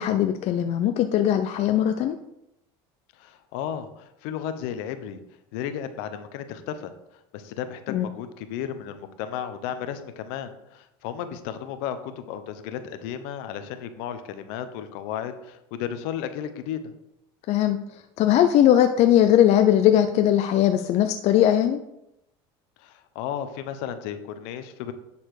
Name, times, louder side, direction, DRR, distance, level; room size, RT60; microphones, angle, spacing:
voice 1, 0.0-2.2 7.9-8.1 17.5-17.8 18.2-21.8, left 11 dB, 55° left, 7 dB, 0.6 m, -19 dB
voice 2, 3.2-5.2 5.5-6.9 7.3-16.8 22.8-24.9, left 9 dB, 75° left, 10 dB, 1.0 m, -34 dB
10.5 x 4.3 x 4.9 m, 0.83 s
supercardioid pair, 110°, 14 cm